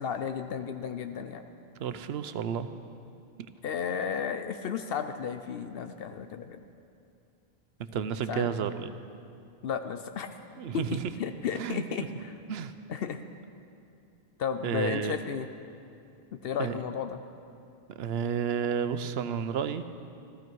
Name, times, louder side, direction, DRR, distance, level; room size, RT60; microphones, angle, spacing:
voice 1, 0.0-1.4 3.6-6.6 8.3-8.5 9.6-10.3 10.7-12.3 12.9-13.2 14.4-15.5 16.4-17.2, left 7 dB, 70° left, 8 dB, 0.8 m, -33 dB
voice 2, 1.8-2.7 7.9-8.9 10.6-11.0 11.6-11.8 12.5-12.7 14.6-15.2 16.6-16.8 18.0-19.9, right 7 dB, 80° right, 11 dB, 0.9 m, -31 dB
15.0 x 13.5 x 4.6 m, 2.6 s
omnidirectional pair, 1.0 m